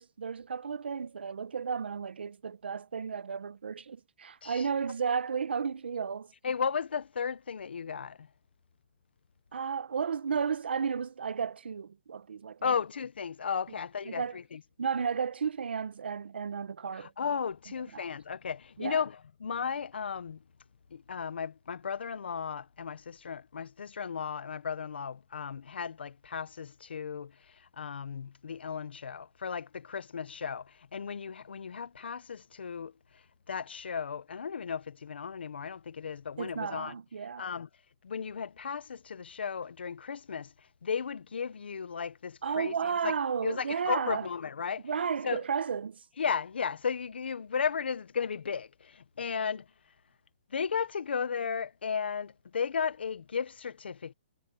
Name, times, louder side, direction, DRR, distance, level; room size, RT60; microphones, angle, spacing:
voice 1, 0.0-6.3 9.5-12.8 14.0-14.4 14.8-17.1 17.9-18.1 18.8-19.0 36.4-37.5 42.4-44.3 44.8-46.0, right 6 dB, 85° right, 1.2 m, -33 dB
voice 2, 6.4-8.3 12.6-14.6 17.0-19.1 19.4-20.4 20.9-27.3 27.8-32.9 33.5-36.9 37.4-37.7 38.0-40.5 40.8-42.7 43.0-43.1 43.4-44.9 45.2-45.4 46.2-49.6 50.5-54.1, left 6 dB, 80° left, 1.2 m, -35 dB
hypercardioid pair, 175°, 6 cm